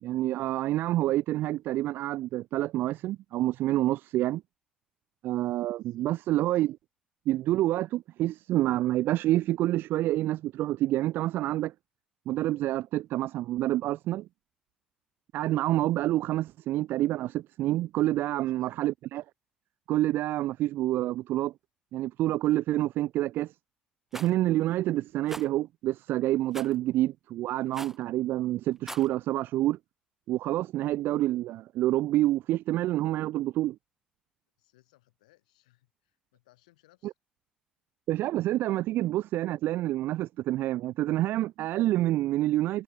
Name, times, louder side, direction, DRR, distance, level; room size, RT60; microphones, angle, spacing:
voice 1, 0.0-4.4 5.2-6.8 7.3-11.7 12.3-14.3 15.3-19.2 19.9-21.5 21.9-23.5 24.1-29.8 30.3-33.8 37.0-37.1 38.1-42.8, right 15 dB, 65° right, 0.4 m, -28 dB
voice 2, 5.5-6.0 18.3-18.8 34.6-37.1, left 19 dB, 80° left, 6.6 m, -65 dB
Rattle, 24.1-24.3 25.3-25.5 26.5-26.8 27.7-28.0 28.7-29.1, right 1 dB, 10° right, 1.6 m, -41 dB
hypercardioid pair, 50°, 4 cm